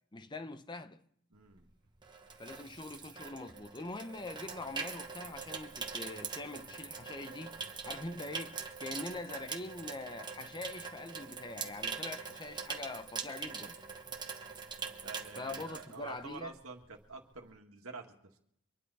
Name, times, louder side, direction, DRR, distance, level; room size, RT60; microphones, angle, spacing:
voice 1, 0.1-1.0 2.4-13.8 15.4-16.5, left 2 dB, 20° left, 0.7 m, -43 dB
voice 2, 1.3-1.7 15.0-18.1, right 4 dB, 70° right, 1.9 m, -48 dB
Water tap faucet / Sink (filling or washing), 1.5-16.5 16.8-17.1, right 5 dB, 20° right, 1.2 m, -43 dB
25.5 x 10.5 x 4.1 m
head